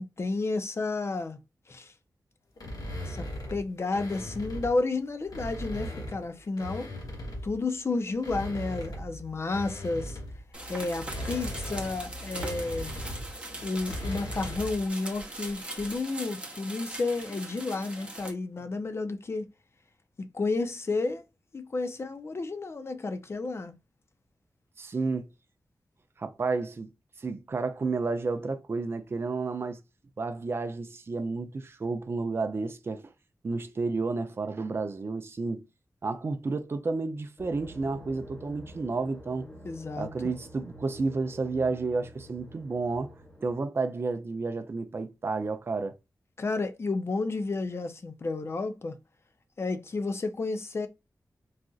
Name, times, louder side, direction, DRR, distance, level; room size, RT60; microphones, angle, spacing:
voice 1, 0.0-1.4 1.7-1.9 3.0-3.3 3.5-6.9 7.4-10.2 10.7-12.9 13.6-19.5 20.2-21.2 21.5-23.7 39.6-40.1 46.4-49.0 49.6-50.9, left 3 dB, 40° left, 0.5 m, -31 dB
sound 1, 2.6-4.8 5.2-7.6 8.1-14.8, equal, 75° left, 1.1 m, -38 dB
sound 2, 10.5-18.3, right 1 dB, 15° right, 0.8 m, -41 dB
voice 2, 24.8-25.3 26.2-26.9 27.2-29.8 30.2-33.1 33.4-35.6 36.0-39.5 40.0-43.1 43.4-46.0, right 3 dB, 40° right, 0.4 m, -31 dB
sound 3, 37.4-43.6, equal, 25° left, 1.1 m, -48 dB
4.0 x 2.4 x 2.3 m
wide cardioid pair, 130°, 6 cm